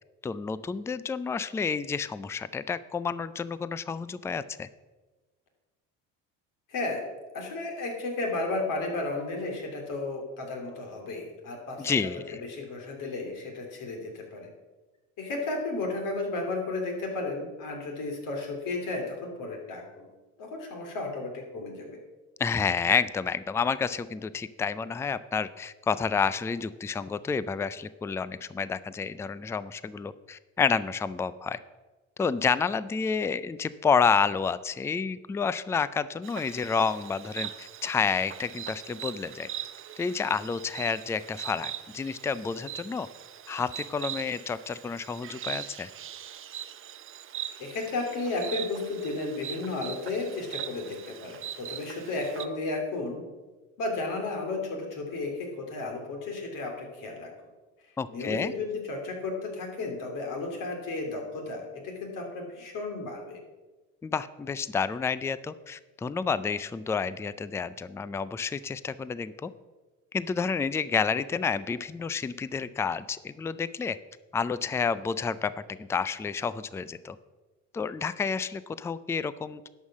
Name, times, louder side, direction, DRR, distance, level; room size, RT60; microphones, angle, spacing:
voice 1, 0.2-4.7 11.8-12.4 22.4-31.6 32.2-39.5 40.0-43.1 43.5-45.9 58.0-58.5 64.0-69.5 70.1-74.0 74.3-75.5 75.8-77.2 77.7-79.6, left 5 dB, 10° left, 16 dB, 0.3 m, -29 dB
voice 2, 6.7-7.0 7.3-14.5 15.2-20.1 20.4-22.0 47.6-53.3 53.8-57.3 58.1-63.4, left 3 dB, 60° left, 2 dB, 3.2 m, -33 dB
Insect, 36.2-52.5, right 10 dB, 35° right, 0.7 m, -41 dB
11.0 x 5.5 x 7.4 m, 1.2 s
supercardioid pair, 95°, 36 cm